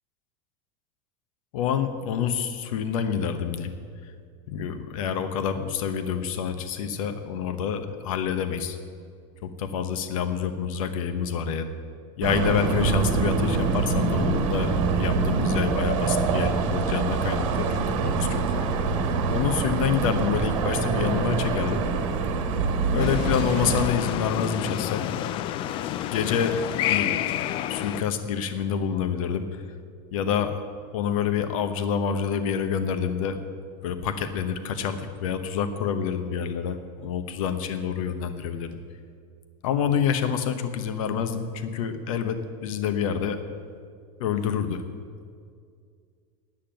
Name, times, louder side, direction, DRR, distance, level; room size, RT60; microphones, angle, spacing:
voice 1, 1.5-3.7 4.0-4.1 4.5-8.8 9.4-11.7 12.2-18.7 19.3-21.8 22.9-25.1 25.5-25.7 26.1-27.1 27.7-29.6 30.1-30.6 30.9-33.4 33.8-38.8 39.6-43.4 44.2-44.8, left 7 dB, 85° left, 9 dB, 1.1 m, -27 dB
sound 1, 12.2-23.9, right 4 dB, 65° right, 1.5 m, -25 dB
sound 2, 23.0-28.0, left 12 dB, 30° left, 0.4 m, -29 dB
9.8 x 8.7 x 9.0 m, 2.2 s
supercardioid pair, 160°, 17 cm